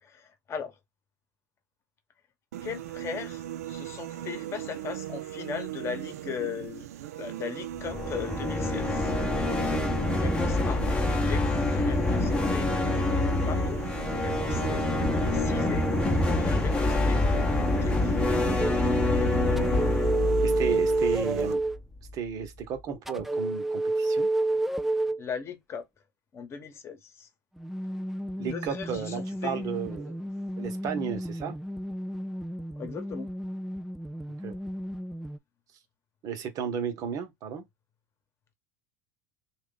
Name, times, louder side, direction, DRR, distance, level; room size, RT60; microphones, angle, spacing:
voice 1, 0.0-0.8 2.6-6.9 7.2-9.1 10.2-11.5 11.8-12.7 13.5-13.8 14.1-14.8 15.3-15.9 16.2-17.3 17.7-18.2 25.2-25.8 26.3-27.3 28.4-29.7 30.1-30.2 32.7-33.3, left 7 dB, 35° left, 1.1 m, -38 dB
sound 1, 2.5-21.5, right 12 dB, 80° right, 0.4 m, -38 dB
sound 2, 7.7-21.8, left 2 dB, 15° left, 0.9 m, -26 dB
sound 3, 18.6-18.8 19.6-21.8 23.1-25.2 27.6-35.4, right 2 dB, ahead, 0.3 m, -30 dB
voice 2, 20.4-21.6 22.1-24.3 28.4-30.2 30.6-31.6 34.4-34.5 36.2-37.6, right 7 dB, 45° right, 1.1 m, -33 dB
3.0 x 2.5 x 3.8 m
hypercardioid pair, 95°, 8 cm